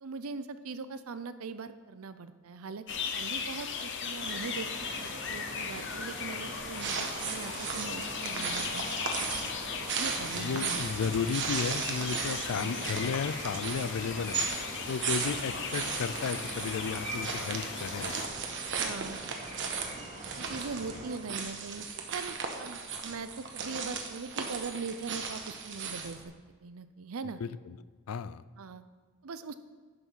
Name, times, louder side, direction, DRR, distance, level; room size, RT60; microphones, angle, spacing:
voice 1, 0.0-2.9 3.1-4.7 5.0-9.5 9.9-10.8 12.5-12.8 18.8-19.2 20.4-21.8 22.1-26.3 26.6-27.4 28.6-28.8 29.2-29.5, right 4 dB, 80° right, 12 dB, 0.6 m, -41 dB
sound 1, 2.9-18.3, left 6 dB, 60° left, 0.9 m, -38 dB
sound 2, 4.2-21.2, right 2 dB, 35° right, 2.0 m, -44 dB
sound 3, 6.6-26.2, right 5 dB, 60° right, 1.3 m, -36 dB
voice 2, 10.3-14.4 14.9-18.2 27.4-27.8 28.1-28.4, left 6 dB, 80° left, 16 dB, 0.4 m, -34 dB
11.0 x 5.7 x 5.6 m, 1.5 s
head